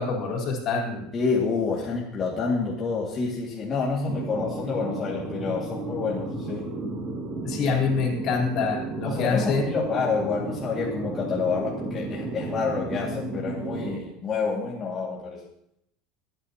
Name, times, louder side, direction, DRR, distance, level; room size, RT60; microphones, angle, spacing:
voice 1, 0.0-1.1 7.4-9.7, left 5 dB, 50° left, 0 dB, 3.8 m, -26 dB
voice 2, 1.1-6.7 9.1-15.4, left 5 dB, 30° left, -5 dB, 2.1 m, -28 dB
sound 1, 4.1-14.0, right 2 dB, 35° right, 2.3 m, -33 dB
24.0 x 9.0 x 2.9 m, 0.77 s
supercardioid pair, 130°, 0 cm